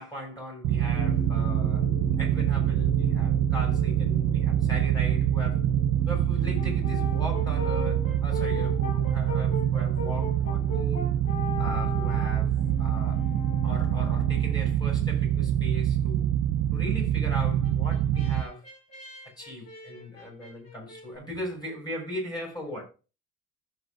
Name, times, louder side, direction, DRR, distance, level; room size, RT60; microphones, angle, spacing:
voice 1, 0.0-1.9 2.2-5.7 6.1-11.1 11.6-13.2 13.6-16.3 16.7-18.6 19.4-22.8, left 1 dB, 15° left, 6.5 m, -38 dB
sound 1, 0.6-18.4, right 10 dB, 80° right, 0.7 m, -25 dB
sound 2, 0.9-15.8, left 2 dB, 75° left, 5.5 m, -43 dB
Brass instrument, 6.6-14.9 17.4-21.1, left 3 dB, 60° left, 5.0 m, -38 dB
15.5 x 7.7 x 2.5 m
cardioid pair, 145°, 30 cm